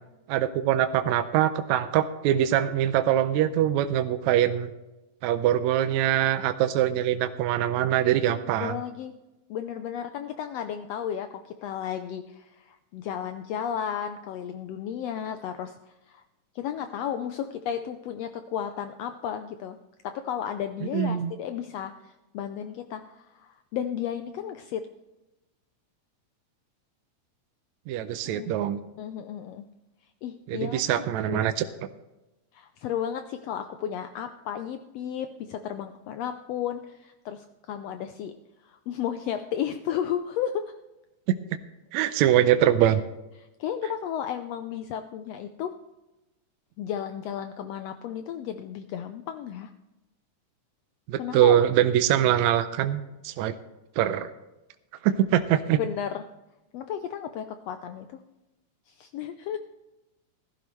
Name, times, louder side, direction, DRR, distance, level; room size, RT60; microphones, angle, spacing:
voice 1, 0.3-4.7 5.2-8.8 20.9-21.3 27.9-28.8 30.5-31.6 41.9-43.0 51.1-53.5 54.0-54.3 55.0-55.8, right 11 dB, 80° right, 10 dB, 1.8 m, -23 dB
voice 2, 8.6-9.1 9.5-15.8 16.1-16.2 16.5-19.8 20.0-24.8 28.3-28.5 29.0-29.6 30.2-31.5 32.5-38.3 38.6-40.6 43.4-45.7 46.8-49.7 51.2-51.6 55.8-56.2 56.7-58.1 58.9-59.6, left 9 dB, 80° left, 8 dB, 1.5 m, -33 dB
15.5 x 13.0 x 3.1 m, 0.99 s
omnidirectional pair, 3.4 m